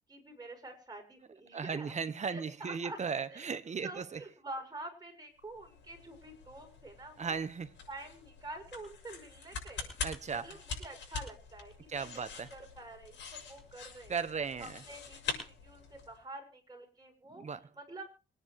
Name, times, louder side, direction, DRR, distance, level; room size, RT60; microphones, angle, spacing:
voice 1, 0.1-2.0 2.3-3.0 3.3-3.4 3.8-7.4 7.9-9.9 10.3-14.1 14.6-17.4 17.7-18.0, right 2 dB, 20° right, 6.7 m, -47 dB
voice 2, 1.5-4.2 7.2-7.7 10.0-10.5 11.9-12.5 14.1-14.8 17.4-17.6, right 5 dB, 35° right, 1.3 m, -36 dB
sound 1, 5.4-16.2, left 5 dB, 70° left, 6.7 m, -45 dB
25.0 x 10.0 x 3.2 m
cardioid pair, 90°, 20 cm